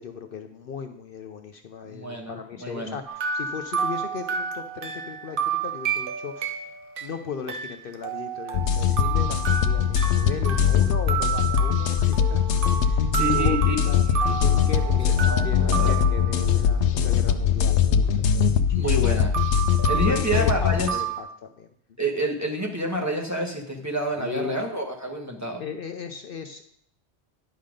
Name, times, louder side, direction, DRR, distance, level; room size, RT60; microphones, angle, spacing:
voice 1, 0.0-6.7 7.0-14.1 14.4-19.1 19.9-21.7 24.2-24.6 25.6-26.6, left 6 dB, 60° left, 6 dB, 0.8 m, -37 dB
voice 2, 1.9-3.0 13.2-13.7 14.1-14.4 15.3-15.9 18.7-19.3 19.9-21.0 22.0-25.6, right 1 dB, 15° right, -1 dB, 1.2 m, -28 dB
sound 1, 3.1-16.9 19.3-21.2, right 7 dB, 55° right, 0.9 m, -31 dB
sound 2, 8.5-20.9, left 8 dB, 90° left, 0.9 m, -22 dB
10.5 x 5.7 x 5.1 m, 0.68 s
omnidirectional pair, 1.1 m